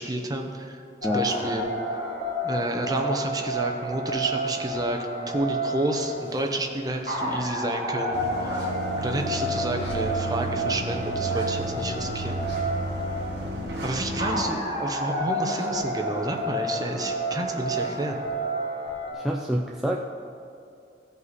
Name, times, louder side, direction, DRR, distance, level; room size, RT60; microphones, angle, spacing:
voice 1, 0.0-1.7 2.4-8.7 9.0-12.4 13.8-18.2, right 1 dB, 20° right, 3 dB, 0.7 m, -30 dB
sound 1, 1.0-19.1, right 1 dB, 50° left, 2.6 m, -30 dB
sound 2, 5.9-7.5 7.7-7.8 8.0-8.7 9.7-10.4 10.7-10.8 11.1-12.1 12.4-14.9 15.3-16.8 17.1-18.2, left 1 dB, 75° left, 1.8 m, -45 dB
sound 3, 8.1-14.4, right 1 dB, 75° right, 1.2 m, -32 dB
voice 2, 19.1-20.0, equal, ahead, -2 dB, 0.4 m, -27 dB
15.5 x 5.5 x 4.1 m, 2.5 s
head